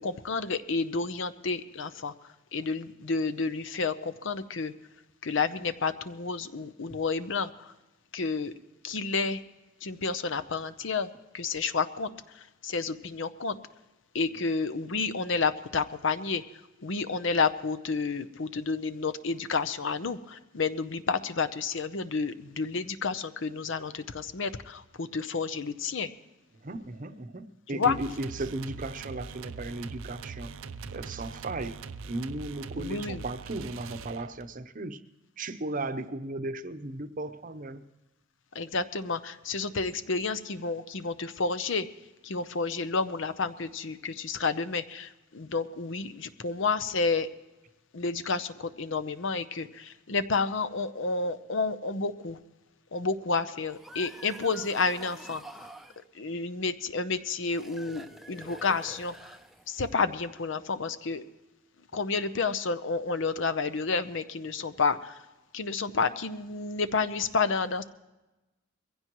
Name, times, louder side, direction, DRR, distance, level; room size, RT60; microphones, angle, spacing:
voice 1, 0.0-2.1 2.5-4.7 5.2-7.7 8.1-8.5 8.8-9.4 9.8-11.1 11.3-13.6 14.1-16.4 16.8-26.1 27.7-28.0 32.8-33.2 38.5-41.9 42.2-47.3 47.9-52.4 52.9-55.7 56.1-59.3 59.7-61.2 61.9-65.2 65.5-67.8, left 4 dB, 65° left, 11 dB, 0.8 m, -30 dB
voice 2, 26.6-30.5 30.9-31.8 32.0-35.0 35.4-37.8, right 2 dB, 40° right, 10 dB, 0.8 m, -36 dB
sound 1, 27.8-34.6, right 5 dB, 80° right, 0.6 m, -42 dB
sound 2, 53.6-56.0 57.4-59.9, right 1 dB, ahead, 0.6 m, -47 dB
22.5 x 16.0 x 3.1 m, 1.0 s
head